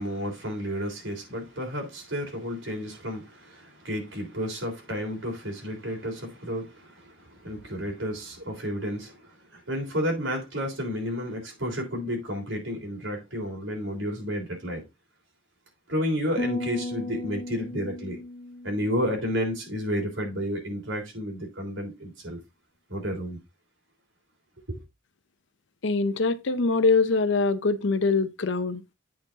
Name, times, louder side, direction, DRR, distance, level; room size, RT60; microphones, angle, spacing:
voice 1, 0.0-14.8 15.9-18.2 18.6-22.4 22.9-23.4 24.7-24.8, equal, 75° right, 3.5 m, -31 dB
sound 1, 16.4-19.8, left 1 dB, 35° left, 1.0 m, -36 dB
voice 2, 25.8-28.8, left 3 dB, 65° left, 0.7 m, -23 dB
8.6 x 4.6 x 3.8 m
head